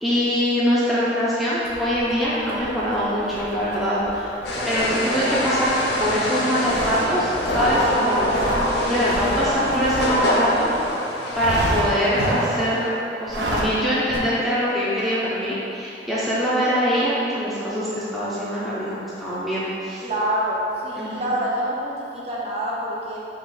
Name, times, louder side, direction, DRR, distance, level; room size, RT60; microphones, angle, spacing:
voice 1, 0.0-4.4 4.7-5.7 6.0-8.3 8.9-10.7 11.3-12.9 13.2-20.1 21.0-21.3, equal, ahead, -10 dB, 0.5 m, -23 dB
sound 1, 1.6-10.9 11.3-12.8 13.2-13.8 14.1-14.2, right 1 dB, 70° right, 0.6 m, -30 dB
sound 2, 4.4-12.9, left 1 dB, 75° left, 0.6 m, -25 dB
voice 2, 20.0-23.2, right 1 dB, 35° right, -6 dB, 0.7 m, -26 dB
4.9 x 2.4 x 3.8 m, 2.8 s
head